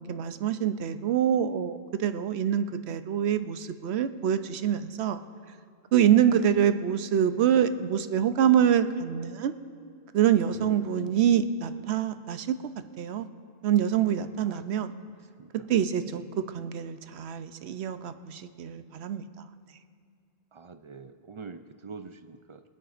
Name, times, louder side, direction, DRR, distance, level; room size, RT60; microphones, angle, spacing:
voice 1, 0.1-5.2 5.9-9.5 10.1-12.5 13.0-13.3 13.6-14.9 15.7-19.3, right 9 dB, 90° right, 10 dB, 0.9 m, -25 dB
voice 2, 6.2-6.7 10.5-10.8 11.0-11.1 14.4-14.7 15.4-15.7 16.1-16.2 20.5-22.6, right 5 dB, 55° right, 8 dB, 0.3 m, -44 dB
24.5 x 9.0 x 2.5 m, 2.3 s
omnidirectional pair, 1.1 m